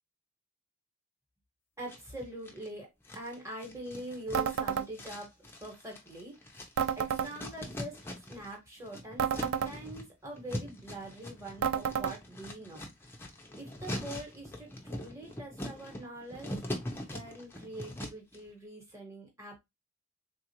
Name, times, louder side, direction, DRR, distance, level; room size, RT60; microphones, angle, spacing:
voice 1, 1.8-6.6 7.0-13.1 13.6-16.6 17.1-19.6, right 1 dB, 15° right, 1.1 m, -44 dB
sound 1, 1.9-2.7 3.0-8.5 8.8-18.4, left 1 dB, 10° left, 0.5 m, -42 dB
sound 2, 4.3-4.9 6.8-7.3 9.2-9.7 11.6-12.2, right 8 dB, 65° right, 0.3 m, -30 dB
3.5 x 2.4 x 2.8 m
head